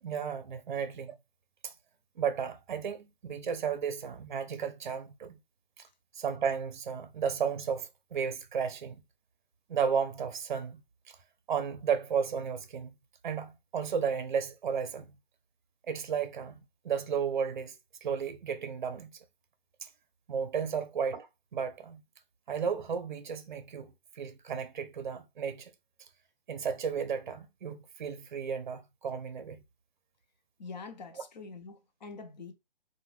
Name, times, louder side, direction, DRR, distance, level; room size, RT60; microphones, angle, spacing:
voice 1, 0.0-1.1 1.6-1.7 2.2-5.4 6.1-9.0 9.7-10.8 11.5-12.9 13.2-15.1 15.9-17.7 18.0-19.1 19.8-19.9 20.3-22.0 22.5-25.7 26.5-29.6, right 7 dB, 50° right, 0.5 m, -33 dB
voice 2, 30.6-32.5, left 4 dB, 45° left, 0.5 m, -45 dB
2.5 x 2.1 x 3.0 m
figure-of-eight pair, 150°, 30 cm